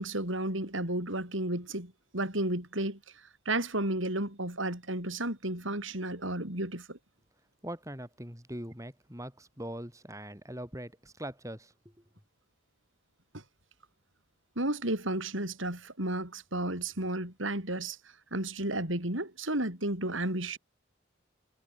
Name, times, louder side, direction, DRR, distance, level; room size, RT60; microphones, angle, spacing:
voice 1, 0.0-7.0 14.6-20.6, right 1 dB, 75° right, 7.0 m, -33 dB
voice 2, 7.6-11.7, right 1 dB, 15° right, 7.7 m, -42 dB
head